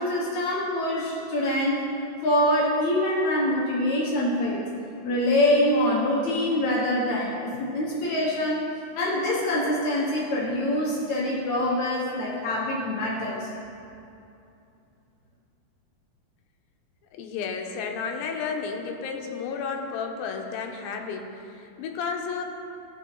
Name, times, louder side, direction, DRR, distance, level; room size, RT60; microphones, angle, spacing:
voice 1, 0.0-1.9 2.2-4.6 5.0-8.6 9.0-13.5, left 1 dB, 60° left, -4 dB, 2.2 m, -25 dB
voice 2, 17.1-22.4, left 5 dB, 85° left, 2 dB, 2.6 m, -32 dB
15.0 x 6.1 x 4.5 m, 2.7 s
omnidirectional pair, 4.3 m